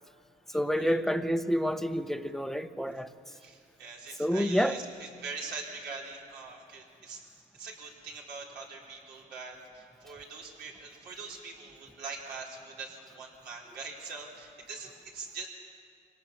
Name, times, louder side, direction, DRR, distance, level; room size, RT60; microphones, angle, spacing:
voice 1, 0.5-3.1 4.2-4.8, equal, ahead, 9 dB, 0.8 m, -28 dB
voice 2, 3.3-7.2 7.5-15.5, right 4 dB, 75° right, -2 dB, 4.7 m, -43 dB
25.0 x 18.0 x 7.3 m, 2.3 s
cardioid pair, 110°, 17 cm